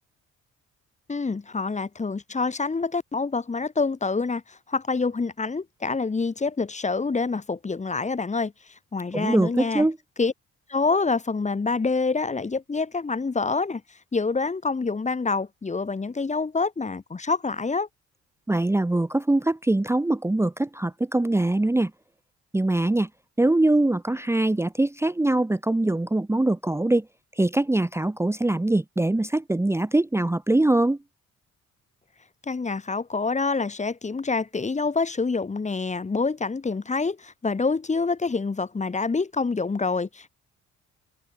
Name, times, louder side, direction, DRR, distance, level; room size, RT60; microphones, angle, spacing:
voice 1, 1.1-8.5 8.9-9.9 10.2-10.3 10.7-13.8 14.1-17.9 32.5-40.3, left 4 dB, 25° left, 1.4 m, -26 dB
voice 2, 9.1-10.0 18.5-21.9 22.5-23.1 23.4-27.1 27.4-31.0, right 2 dB, 10° right, 1.0 m, -23 dB
cardioid pair, 90°, 30 cm